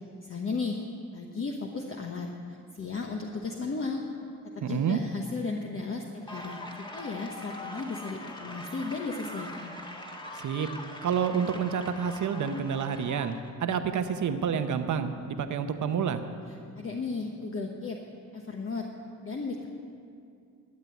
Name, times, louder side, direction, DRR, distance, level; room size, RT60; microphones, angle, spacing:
voice 1, 0.2-0.8 1.1-2.3 2.7-4.0 4.5-9.8 16.5-18.0 18.3-18.9 19.2-19.7, left 4 dB, 40° left, 1 dB, 1.1 m, -35 dB
voice 2, 4.6-5.0 10.4-10.7 11.0-13.4 13.6-16.2, right 7 dB, 65° right, 8 dB, 1.0 m, -28 dB
sound 1, 6.3-13.5, left 1 dB, 15° left, 1.5 m, -42 dB
12.5 x 7.7 x 9.4 m, 2.5 s
cardioid pair, 85°, 32 cm